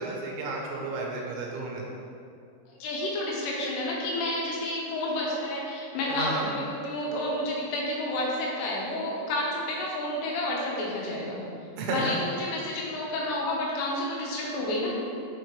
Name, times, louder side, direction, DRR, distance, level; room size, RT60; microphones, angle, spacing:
voice 1, 0.0-1.8 6.1-6.5 11.8-12.2, right 3 dB, 80° right, -1 dB, 3.1 m, -32 dB
voice 2, 2.8-11.4 11.9-14.9, left 1 dB, 85° left, -4 dB, 3.7 m, -30 dB
6.9 x 5.6 x 3.2 m, 2.4 s
omnidirectional pair, 5.6 m